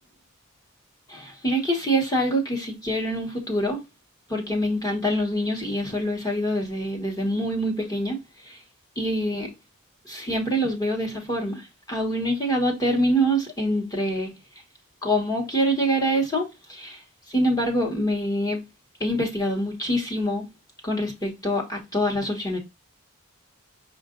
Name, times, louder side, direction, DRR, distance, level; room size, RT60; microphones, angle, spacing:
voice 1, 1.1-3.8 4.3-8.2 8.4-8.6 9.0-9.5 10.0-14.3 15.0-17.0 17.3-18.6 19.0-20.4 20.8-22.6, equal, 15° left, 1.1 m, -25 dB
5.7 x 2.5 x 3.7 m
head